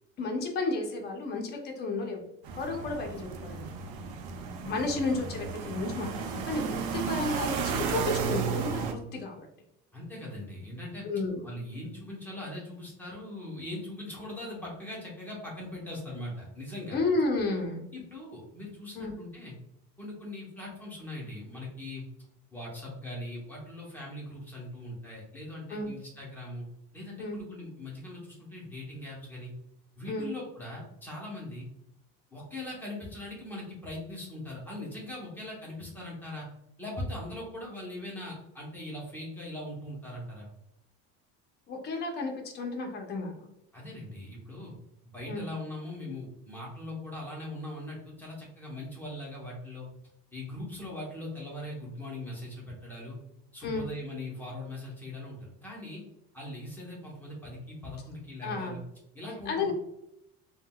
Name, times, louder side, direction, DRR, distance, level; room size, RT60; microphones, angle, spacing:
voice 1, 0.2-2.2 2.6-3.7 4.6-9.5 11.0-11.4 16.9-17.8 19.0-19.1 25.7-25.9 27.2-27.4 30.1-30.3 41.7-43.5 45.3-45.5 53.6-53.9 58.4-58.8 59.5-59.7, left 3 dB, 35° left, 1 dB, 0.7 m, -32 dB
sound 1, 2.5-8.9, right 6 dB, 75° right, 0.5 m, -33 dB
voice 2, 9.9-11.1 11.4-17.0 17.9-19.5 20.0-22.0 22.5-26.6 26.9-29.5 30.0-31.7 32.3-36.5 36.8-40.5 43.7-44.7 45.1-49.9 50.3-53.2 53.5-56.0 56.3-58.8 59.1-59.7, left 1 dB, 5° left, -5 dB, 0.9 m, -40 dB
3.6 x 2.3 x 2.2 m, 0.79 s
cardioid pair, 145°, 30 cm